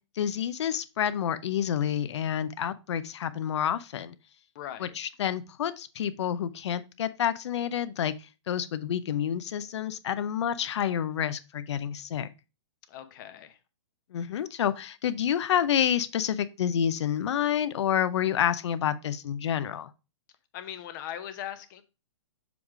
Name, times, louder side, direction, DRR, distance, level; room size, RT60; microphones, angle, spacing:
voice 1, 0.2-4.1 4.8-8.1 8.5-12.3 14.1-19.9, left 9 dB, 65° left, 0.7 m, -28 dB
voice 2, 4.5-4.9 12.9-13.6 20.5-21.8, left 11 dB, 40° left, 0.9 m, -39 dB
7.0 x 3.2 x 4.8 m
hypercardioid pair, 140°, 15 cm